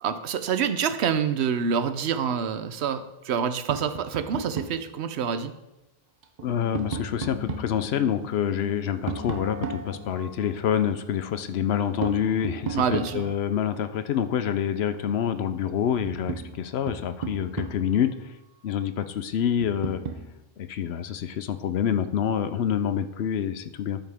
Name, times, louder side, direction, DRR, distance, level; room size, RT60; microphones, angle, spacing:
voice 1, 0.0-5.5 12.7-13.3, right 7 dB, 80° right, 11 dB, 0.9 m, -27 dB
Tap, 3.7-4.9 6.2-7.8 9.1-10.5 12.0-13.5 15.4-15.5 15.8-18.0 19.6-20.3, right 5 dB, 45° right, 0.7 m, -35 dB
voice 2, 6.4-18.1 18.6-20.0 20.6-24.0, left 9 dB, 75° left, 11 dB, 0.9 m, -27 dB
sound 1, 6.4-12.4, left 12 dB, 10° left, 1.5 m, -42 dB
12.5 x 5.9 x 3.5 m, 0.97 s
omnidirectional pair, 1.1 m